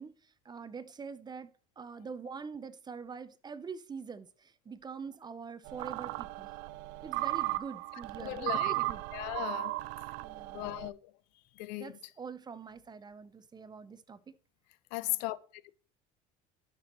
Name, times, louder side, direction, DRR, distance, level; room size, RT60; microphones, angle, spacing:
voice 1, 0.0-6.5 7.0-9.0 10.2-10.7 11.8-14.3, right 5 dB, 20° right, 0.5 m, -45 dB
sound 1, 5.6-10.9, right 18 dB, 70° right, 0.4 m, -36 dB
voice 2, 8.2-8.7 9.1-9.8 10.5-11.0 11.6-11.9 14.9-15.4, left 19 dB, 85° left, 0.5 m, -36 dB
12.0 x 6.0 x 3.0 m
supercardioid pair, 110°, 21 cm